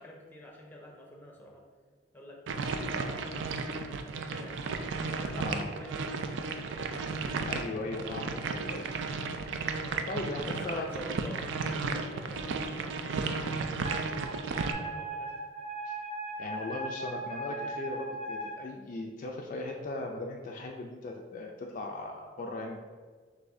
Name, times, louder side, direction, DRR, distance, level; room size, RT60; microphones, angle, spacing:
voice 1, 0.0-1.6 2.1-7.5 9.8-10.1 10.5-15.4, left 1 dB, 10° left, -1 dB, 0.7 m, -48 dB
sound 1, 2.5-14.7, right 4 dB, 75° right, 0.4 m, -34 dB
voice 2, 5.4-5.7 7.5-8.9 10.1-11.0 15.9-16.0 16.4-22.8, left 2 dB, 45° left, 1 dB, 0.4 m, -38 dB
Wind instrument woodwind instrument, 13.8-18.6, right 2 dB, 35° right, 0.8 m, -38 dB
6.4 x 2.7 x 2.6 m, 1.5 s
head